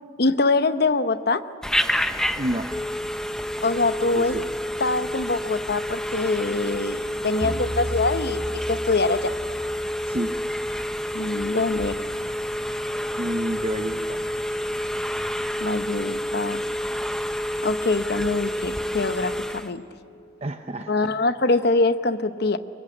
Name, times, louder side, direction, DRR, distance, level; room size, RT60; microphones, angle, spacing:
voice 1, 0.2-1.4 3.6-4.4 4.8-9.3 11.1-12.1 15.6-16.6 17.6-19.8 20.9-22.6, left 3 dB, 55° left, 12 dB, 0.8 m, -24 dB
Telephone, 1.6-19.7, equal, 5° left, 0.7 m, -28 dB
voice 2, 2.4-2.7 4.1-4.4 10.1-10.3 13.1-14.2 20.4-21.1, right 1 dB, 35° right, 7 dB, 0.7 m, -29 dB
sound 1, 7.4-10.1, equal, 15° right, 1.8 m, -34 dB
23.5 x 22.5 x 9.9 m, 2.5 s
head